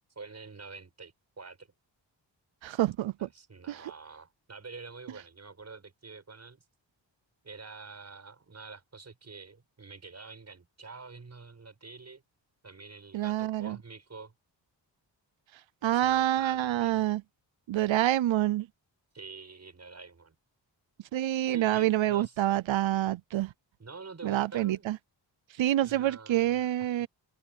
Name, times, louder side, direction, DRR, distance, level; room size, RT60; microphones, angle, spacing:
voice 1, 0.2-1.7 3.2-6.6 7.4-12.2 12.6-14.3 15.8-17.0 19.1-20.4 21.5-22.4 23.8-24.9 25.8-26.7, right 4 dB, 35° right, 7.1 m, -47 dB
voice 2, 2.6-3.3 3.7-3.8 13.1-13.8 15.8-17.2 17.7-18.7 21.1-23.5 24.2-25.0 25.6-27.1, right 13 dB, 85° right, 0.6 m, -27 dB
wide cardioid pair, 175°, 45 cm